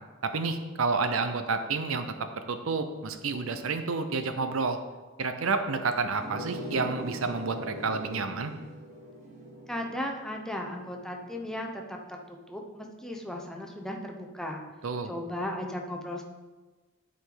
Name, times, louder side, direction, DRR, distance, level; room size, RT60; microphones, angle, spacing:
voice 1, 0.2-2.1 2.5-4.8 5.2-8.5 14.8-15.1, right 4 dB, 75° right, 8 dB, 0.7 m, -29 dB
sound 1, 6.1-11.4, right 1 dB, 35° right, 1.5 m, -41 dB
voice 2, 9.7-14.6 15.0-16.2, left 1 dB, 5° left, 1 dB, 0.8 m, -36 dB
11.5 x 5.0 x 3.9 m, 1.3 s
head